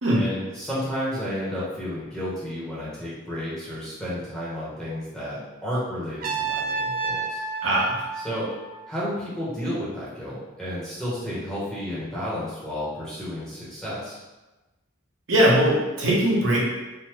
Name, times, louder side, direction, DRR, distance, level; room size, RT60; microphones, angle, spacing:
voice 1, 0.2-7.4 8.2-8.5 8.9-14.2, equal, 5° left, -9 dB, 0.8 m, -32 dB
Trumpet, 6.2-9.2, right 4 dB, 45° right, 0.4 m, -30 dB
voice 2, 7.6-8.0 15.3-16.6, right 1 dB, 70° right, -6 dB, 0.9 m, -20 dB
3.3 x 2.1 x 3.0 m, 1.1 s
head